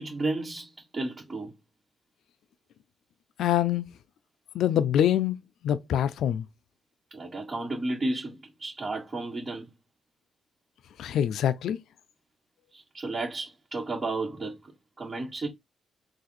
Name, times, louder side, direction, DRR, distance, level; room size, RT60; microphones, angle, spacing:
voice 1, 0.0-1.5 7.1-9.7 12.7-15.5, right 2 dB, 35° right, 2.1 m, -33 dB
voice 2, 3.4-3.9 4.5-5.4 5.6-6.5 11.0-11.8, left 10 dB, 85° left, 0.5 m, -25 dB
3.9 x 2.6 x 4.3 m
cardioid pair, 75°, 0 cm